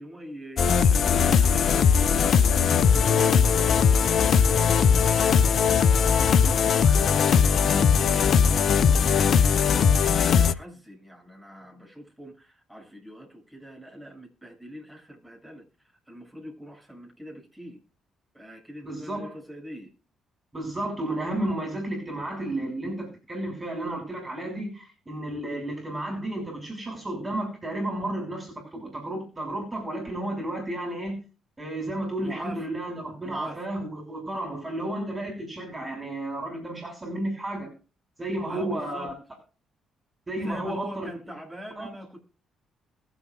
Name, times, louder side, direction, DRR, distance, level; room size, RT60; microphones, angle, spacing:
voice 1, 0.0-15.6 16.1-17.8 18.3-19.9 21.0-21.1 32.2-32.7 33.2-33.7 38.5-39.1 40.4-42.2, right 1 dB, ahead, 7.5 m, -43 dB
sound 1, 0.6-10.5, left 6 dB, 60° left, 0.8 m, -20 dB
voice 2, 18.8-19.3 20.5-31.2 31.6-37.7 38.2-39.1 40.3-41.1 41.8-41.9, right 1 dB, 25° right, 6.2 m, -32 dB
21.5 x 8.2 x 2.5 m
hypercardioid pair, 45°, 0 cm